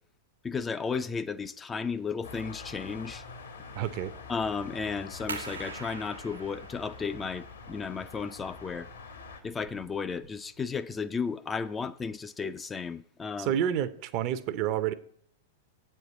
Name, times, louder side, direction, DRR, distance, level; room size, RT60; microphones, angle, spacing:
voice 1, 0.4-3.2 4.3-8.9 9.4-13.6, left 5 dB, 15° left, 0.4 m, -34 dB
sound 1, 2.2-9.4, left 5 dB, 70° left, 1.3 m, -45 dB
voice 2, 3.7-4.1 13.4-14.9, right 10 dB, 40° right, 0.6 m, -29 dB
sound 2, 5.3-10.6, right 4 dB, 75° right, 1.1 m, -45 dB
8.0 x 4.4 x 7.2 m
figure-of-eight pair, 95°, 0 cm